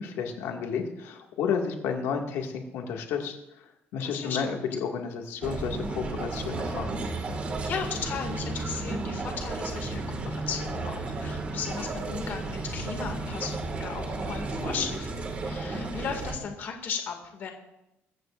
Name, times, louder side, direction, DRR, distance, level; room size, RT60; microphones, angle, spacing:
voice 1, 0.0-3.4 3.9-7.0, left 6 dB, 80° left, 2 dB, 2.0 m, -31 dB
voice 2, 4.0-4.6 7.6-17.5, left 6 dB, 50° left, 3 dB, 2.2 m, -36 dB
sound 1, 5.4-16.3, right 3 dB, 30° right, 1.9 m, -33 dB
24.5 x 14.0 x 2.5 m, 0.90 s
cardioid pair, 170°, 4 cm